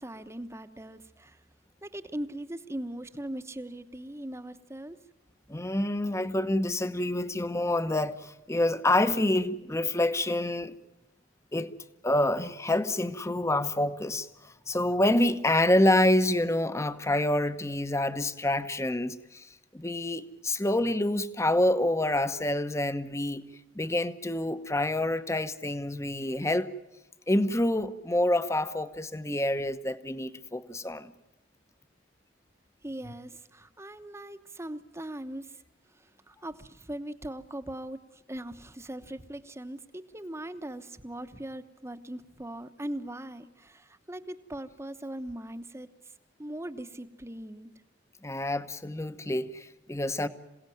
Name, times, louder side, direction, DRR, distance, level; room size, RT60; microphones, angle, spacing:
voice 1, 0.0-1.4 1.8-5.0 32.8-35.6 36.3-45.9 46.4-47.7, right 1 dB, 15° right, 1.0 m, -40 dB
voice 2, 5.5-10.7 11.5-11.7 12.0-23.5 23.7-26.7 27.3-31.1 48.2-50.3, left 1 dB, 15° left, 0.9 m, -27 dB
27.0 x 17.5 x 9.3 m
head